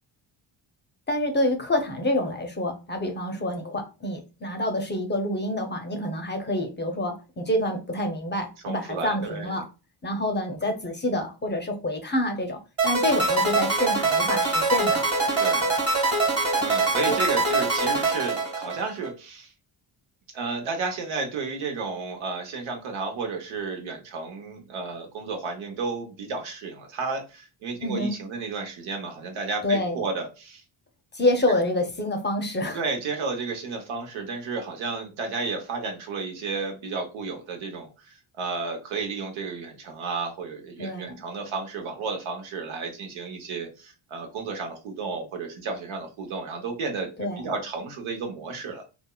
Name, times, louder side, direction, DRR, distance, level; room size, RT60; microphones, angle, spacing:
voice 1, 1.1-9.7 10.0-15.1 17.1-17.2 27.8-28.2 29.6-30.0 31.1-32.8 40.8-41.2 47.2-47.5, left 1 dB, 25° left, 0.6 m, -27 dB
voice 2, 8.6-9.6 15.4-15.8 16.6-19.5 20.3-30.6 32.7-38.1 38.4-47.1 47.4-48.9, right 4 dB, 80° right, 0.9 m, -32 dB
sound 1, 12.8-19.1, right 3 dB, 30° right, 1.3 m, -23 dB
3.4 x 2.0 x 2.2 m
cardioid pair, 80°, 47 cm